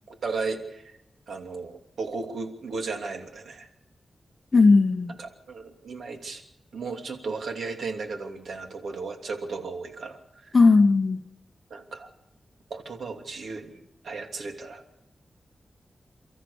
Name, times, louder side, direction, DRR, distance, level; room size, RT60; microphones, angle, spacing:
voice 1, 0.1-0.8 1.3-3.7 5.2-6.4 6.7-10.6 11.7-12.1 12.7-14.8, right 4 dB, 85° right, 3 dB, 2.9 m, -35 dB
voice 2, 4.5-5.1 10.5-11.2, left 3 dB, 35° left, 8 dB, 1.3 m, -17 dB
29.5 x 14.0 x 7.1 m, 0.83 s
wide cardioid pair, 135°, 0 cm